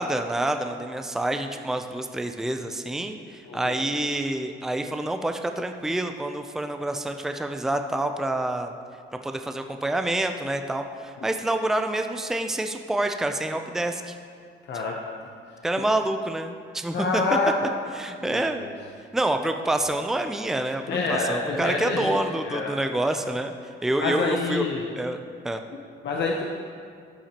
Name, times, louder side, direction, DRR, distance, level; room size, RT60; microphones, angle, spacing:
voice 1, 0.0-8.7 9.2-14.2 15.6-17.2 18.0-18.7 19.1-20.8 21.1-24.7 25.0-25.2 25.4-25.6, right 1 dB, ahead, 6 dB, 0.5 m, -27 dB
voice 2, 3.4-3.8 14.6-15.0 16.9-17.5 18.2-18.7 20.9-22.2 22.4-22.7 24.0-24.8 26.0-26.5, left 4 dB, 60° left, 0 dB, 0.9 m, -27 dB
12.5 x 8.5 x 3.0 m, 2.2 s
cardioid pair, 90°, 20 cm